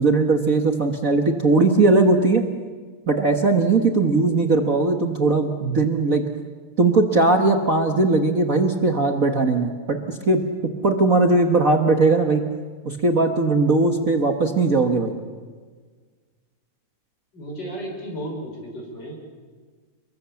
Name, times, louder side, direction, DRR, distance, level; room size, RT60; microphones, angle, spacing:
voice 1, 0.0-2.4 3.1-6.3 6.8-10.4 10.8-12.4 12.8-15.1, right 3 dB, 45° right, 4 dB, 1.0 m, -19 dB
voice 2, 17.3-19.2, right 1 dB, 35° left, 1 dB, 6.4 m, -33 dB
29.5 x 22.0 x 7.1 m, 1.5 s
omnidirectional pair, 3.6 m